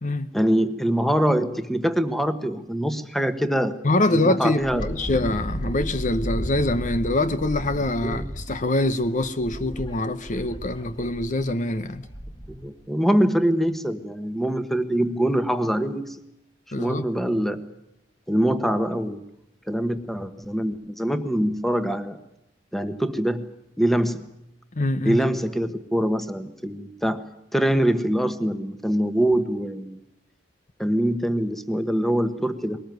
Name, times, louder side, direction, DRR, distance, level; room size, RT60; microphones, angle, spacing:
voice 1, 0.3-3.8 4.1-4.9 8.0-8.3 12.5-16.2 16.8-17.6 18.3-19.2 19.7-22.2 22.7-23.5 23.8-24.2 25.0-30.0 30.8-32.8, right 1 dB, ahead, 1.3 m, -24 dB
voice 2, 3.8-12.1 16.7-17.0 24.8-25.2, left 2 dB, 45° left, 0.9 m, -24 dB
Wind, 4.6-12.7, equal, 25° left, 1.9 m, -34 dB
22.0 x 19.0 x 9.3 m
head